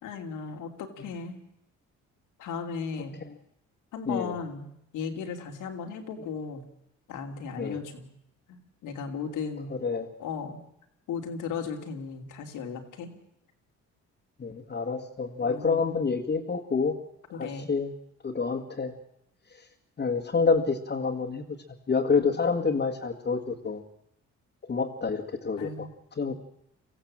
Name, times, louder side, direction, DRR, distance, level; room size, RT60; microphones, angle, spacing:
voice 1, 0.0-1.4 2.4-3.2 3.9-4.7 4.9-6.6 7.1-8.1 8.5-9.7 10.2-10.6 11.1-13.1 15.4-16.0 17.3-17.7 25.6-25.9, left 5 dB, 85° left, 5 dB, 2.8 m, -36 dB
voice 2, 14.4-16.9 17.4-17.9 18.2-18.9 20.0-21.4 21.9-23.8 24.7-25.9 26.2-26.3, left 4 dB, 35° left, -1 dB, 1.9 m, -27 dB
24.5 x 15.0 x 7.5 m, 0.79 s
cardioid pair, 90°, 30 cm